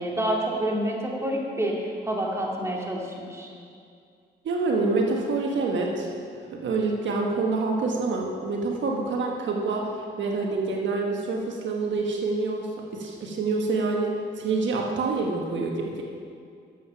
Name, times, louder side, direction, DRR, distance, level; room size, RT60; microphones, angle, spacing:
voice 1, 0.0-3.5, right 1 dB, 15° right, -2 dB, 2.5 m, -28 dB
voice 2, 4.4-6.1 6.5-9.9 10.2-16.0, right 3 dB, 75° right, 0 dB, 1.3 m, -27 dB
12.0 x 7.7 x 5.7 m, 2.3 s
cardioid pair, 70°, 19 cm